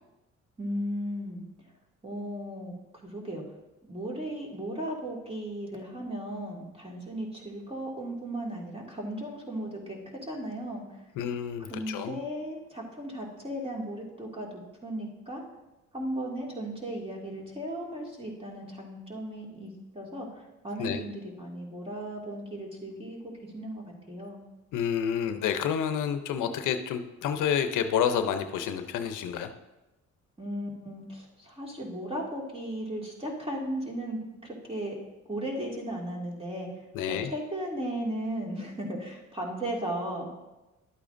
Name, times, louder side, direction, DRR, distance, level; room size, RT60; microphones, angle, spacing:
voice 1, 0.6-1.5 2.0-2.7 3.0-3.4 3.9-10.8 11.7-15.4 15.9-24.4 30.4-35.0 35.3-36.7 37.1-40.3, right 1 dB, 20° right, -2 dB, 2.2 m, -36 dB
voice 2, 11.2-12.2 20.8-21.0 24.7-29.5 36.9-37.3, left 8 dB, 85° left, 8 dB, 0.7 m, -29 dB
11.5 x 8.5 x 2.6 m, 1.0 s
cardioid pair, 90°, 30 cm